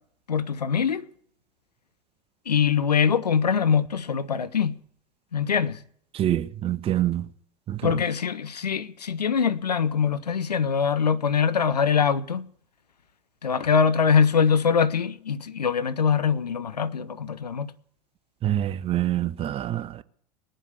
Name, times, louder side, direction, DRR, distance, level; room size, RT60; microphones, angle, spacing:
voice 1, 0.3-1.1 2.5-4.8 5.3-5.8 7.8-12.5 13.4-17.7, left 6 dB, 85° left, 0.6 m, -23 dB
voice 2, 6.1-7.3 7.7-8.0 18.4-20.0, right 12 dB, 30° right, 0.6 m, -26 dB
20.0 x 7.5 x 8.1 m
figure-of-eight pair, 85°, 20 cm